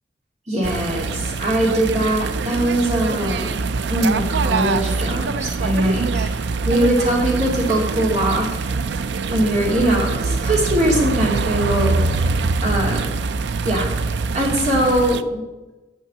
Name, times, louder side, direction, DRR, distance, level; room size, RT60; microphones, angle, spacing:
voice 1, 0.5-3.5 3.9-6.3 6.6-8.6 9.3-12.2 12.6-13.1 13.6-13.9 14.3-15.4, right 1 dB, 40° right, -2 dB, 2.8 m, -21 dB
sound 1, 0.6-15.2, right 4 dB, 70° right, 0.5 m, -24 dB
8.8 x 6.4 x 7.9 m, 1.1 s
head